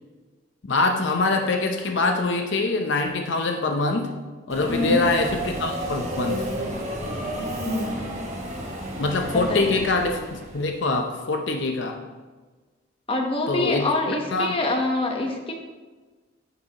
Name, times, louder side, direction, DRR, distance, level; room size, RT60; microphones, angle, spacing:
voice 1, 0.7-4.1 4.5-6.5 9.0-12.0 13.5-13.9 14.3-14.5, left 3 dB, 65° left, 4 dB, 0.7 m, -24 dB
Subway metro underground, 4.5-10.7, equal, 35° right, 1.5 m, -31 dB
voice 2, 4.7-5.1 7.6-8.2 9.5-9.7 13.1-15.5, left 2 dB, 30° left, 2 dB, 1.0 m, -26 dB
11.0 x 6.7 x 2.9 m, 1.3 s
head